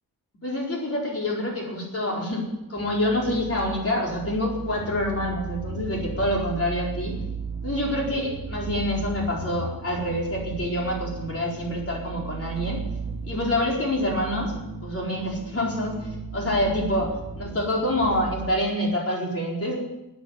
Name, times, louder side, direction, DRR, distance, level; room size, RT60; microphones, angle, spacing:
voice 1, 0.4-7.1 7.6-12.8 13.3-14.5 14.8-17.1 17.4-19.8, left 1 dB, 40° left, -2 dB, 4.5 m, -26 dB
sound 1, 2.7-18.5, right 4 dB, 15° right, 3.0 m, -36 dB
14.0 x 9.1 x 9.5 m, 0.93 s
wide cardioid pair, 165°, 36 cm